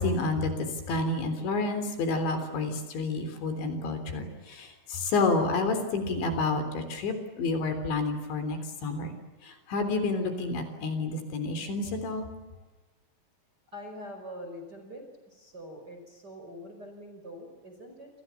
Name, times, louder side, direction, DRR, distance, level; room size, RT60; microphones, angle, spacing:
voice 1, 0.0-9.1 9.4-12.3, left 3 dB, 60° left, 8 dB, 5.7 m, -29 dB
voice 2, 13.7-15.0 15.3-18.1, equal, 20° right, 4 dB, 4.9 m, -44 dB
28.0 x 28.0 x 7.2 m, 1.2 s
omnidirectional pair, 5.9 m